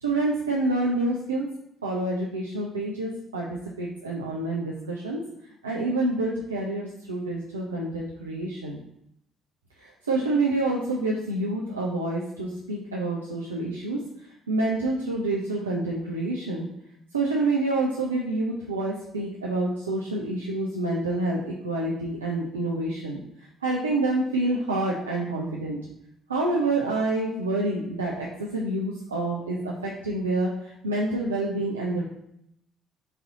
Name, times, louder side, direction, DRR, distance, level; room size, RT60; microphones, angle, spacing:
voice 1, 0.0-1.5 1.8-5.2 5.6-8.8 9.8-14.1 14.5-16.7 17.1-23.2 23.6-25.8 26.3-32.0, right 2 dB, 80° right, -3 dB, 0.4 m, -27 dB
4.0 x 2.6 x 3.8 m, 0.76 s
figure-of-eight pair, 45°, 0 cm